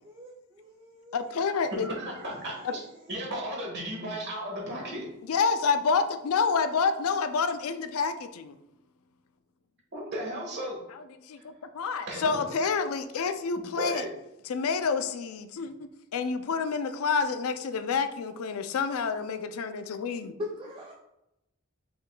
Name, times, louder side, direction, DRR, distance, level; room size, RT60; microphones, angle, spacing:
voice 1, 0.0-1.3 1.7-1.8 20.4-20.9, left 2 dB, 25° right, -1 dB, 0.3 m, -40 dB
voice 2, 1.1-1.9 5.3-8.6 11.3-14.0 14.5-15.7 16.1-20.3, left 5 dB, 85° left, 10 dB, 0.4 m, -28 dB
voice 3, 1.7-2.8 3.1-5.0 9.9-10.8 12.0-12.4 13.8-14.1, right 1 dB, 50° right, -1 dB, 1.4 m, -35 dB
5.3 x 3.8 x 2.2 m, 0.88 s
head